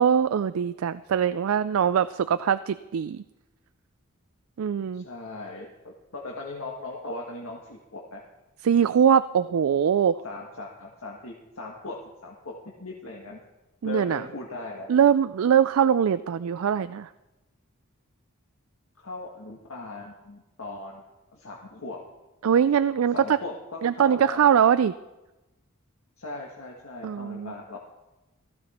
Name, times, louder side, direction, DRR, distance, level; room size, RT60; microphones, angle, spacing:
voice 1, 0.0-3.2 4.6-5.0 8.6-10.2 13.8-14.2 14.9-17.1 22.4-23.4 23.8-24.9 27.0-27.5, right 8 dB, 75° right, 13 dB, 0.4 m, -22 dB
voice 2, 4.9-8.2 10.2-12.0 12.2-12.5 12.8-13.4 13.8-14.9 19.0-21.0 21.3-22.0 23.1-24.4 26.2-27.8, left 2 dB, 80° left, -1 dB, 1.6 m, -38 dB
16.5 x 14.0 x 4.3 m, 1.0 s
head